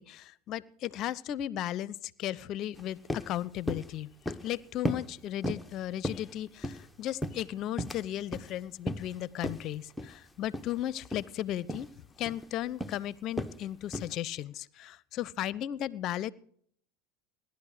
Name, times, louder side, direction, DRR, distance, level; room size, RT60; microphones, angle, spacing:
voice 1, 0.0-4.1 4.4-11.9 12.2-16.3, left 12 dB, 50° left, 22 dB, 0.7 m, -35 dB
sound 1, 2.7-2.8 3.1-3.3 3.7-3.9 4.3-4.5 4.8-5.1 5.4-5.7 6.0-6.9 7.2-8.0 8.3-8.5 8.9-9.1 9.4-9.6 10.0-10.2 10.5-10.7 11.0-11.3 11.7-11.9 12.2-12.5 12.8-13.0 13.4-13.6 13.9-14.1, equal, 5° left, 1.0 m, -35 dB
17.0 x 11.5 x 4.9 m, 0.63 s
hypercardioid pair, 90°, 0 cm